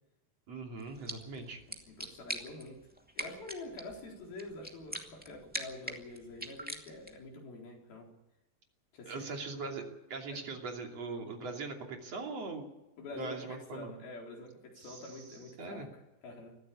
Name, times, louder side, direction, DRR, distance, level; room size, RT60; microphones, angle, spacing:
voice 1, 0.5-1.6 9.1-9.8 10.1-12.7 13.1-13.9 14.8-15.2 15.6-15.9, right 3 dB, 45° right, 2 dB, 3.6 m, -41 dB
sound 1, 0.8-7.3, equal, 5° right, 0.6 m, -44 dB
voice 2, 1.9-2.8 3.2-8.1 8.9-9.5 10.3-10.4 13.0-16.6, left 2 dB, 70° left, 0 dB, 5.9 m, -46 dB
22.0 x 14.5 x 8.6 m, 0.94 s
omnidirectional pair, 4.5 m